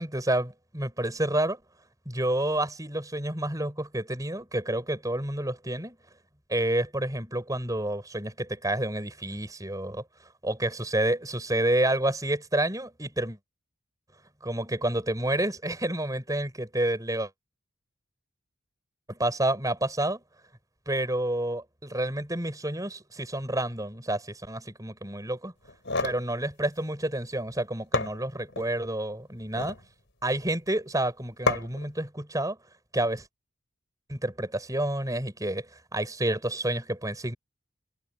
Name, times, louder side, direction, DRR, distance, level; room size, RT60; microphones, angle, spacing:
voice 1, 0.0-1.6 2.1-6.0 6.5-13.4 14.4-17.3 19.1-20.2 20.9-25.5 26.0-29.8 30.2-32.6 32.9-33.3 34.1-37.4, right 1 dB, 15° right, 5.9 m, -29 dB
sound 1, 25.6-26.2 27.5-27.6 27.9-28.7 29.4-29.8 31.5-31.9, left 3 dB, 55° left, 6.8 m, -29 dB
head